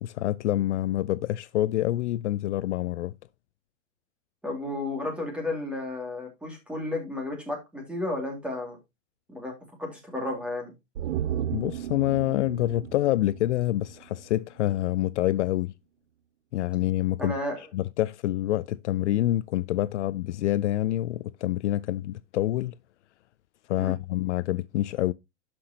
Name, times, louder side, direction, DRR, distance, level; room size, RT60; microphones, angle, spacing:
voice 1, 0.0-3.1 11.5-15.7 16.5-17.3 17.7-22.7 23.7-25.1, left 14 dB, 65° left, 0.5 m, -27 dB
voice 2, 4.4-8.8 9.3-10.7 17.2-17.6 23.8-23.9, left 2 dB, 5° right, 2.3 m, -33 dB
sound 1, 10.9-14.3 14.6-14.7, right 10 dB, 60° right, 0.6 m, -34 dB
11.5 x 6.0 x 2.8 m
supercardioid pair, 165°, 38 cm